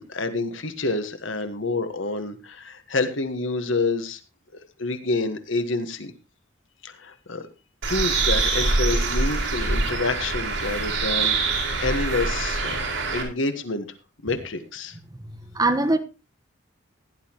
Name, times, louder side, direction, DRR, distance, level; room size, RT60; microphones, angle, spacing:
voice 1, 0.0-4.2 4.8-6.1 6.8-7.5 7.9-13.9 14.2-15.0, left 3 dB, 80° left, 9 dB, 1.4 m, -28 dB
Bird, 7.8-13.2, right 3 dB, 80° right, 4.3 m, -24 dB
voice 2, 15.2-16.0, right 2 dB, 20° right, 7 dB, 1.2 m, -23 dB
16.5 x 10.5 x 3.0 m, 0.28 s
head